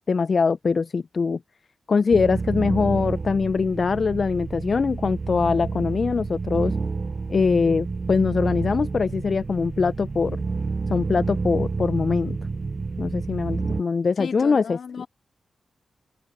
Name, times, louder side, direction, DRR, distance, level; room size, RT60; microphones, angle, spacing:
voice 1, 0.1-1.4 1.9-6.7 7.3-10.4 10.9-12.4 13.0-14.8, left 5 dB, 55° left, 0.3 m, -22 dB
sound 1, 2.1-13.8, right 4 dB, 45° right, 0.5 m, -29 dB
voice 2, 14.2-15.1, left 6 dB, 75° left, 2.1 m, -35 dB
open air
cardioid pair, 55°, 0 cm